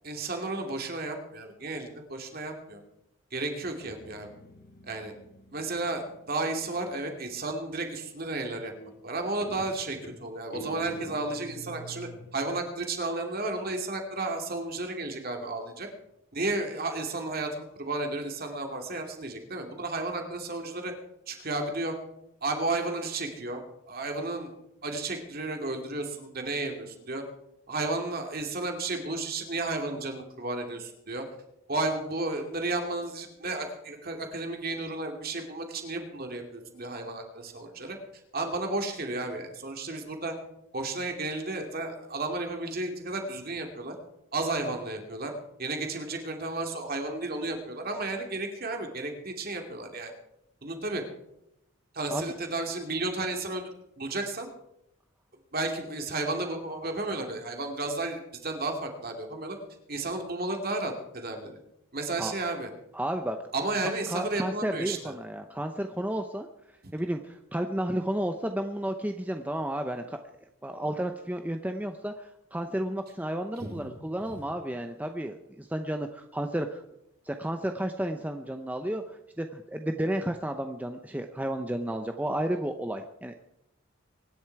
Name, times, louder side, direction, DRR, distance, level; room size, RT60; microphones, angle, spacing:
voice 1, 0.0-2.8 3.3-4.3 4.8-5.1 5.5-8.7 9.0-15.9 16.3-20.9 21.3-21.9 22.4-24.5 24.8-27.2 27.7-31.3 31.7-38.0 38.3-40.4 40.7-43.9 44.3-45.3 45.6-50.1 50.6-51.0 51.9-53.6 54.0-54.5 55.5-59.6 59.9-61.6 61.9-62.7 63.5-65.1 66.8-66.9 73.6-73.9 74.2-74.4, right 2 dB, 45° right, 3 dB, 2.6 m, -33 dB
Guitar, 3.7-7.2 8.8-9.2 9.4-12.3, right 1 dB, 45° left, 1.9 m, -45 dB
voice 2, 62.9-63.4 64.1-66.5 66.9-70.2 70.6-76.8 77.2-83.4, right 1 dB, 5° right, 5 dB, 0.6 m, -32 dB
24.0 x 11.0 x 4.7 m, 0.83 s
head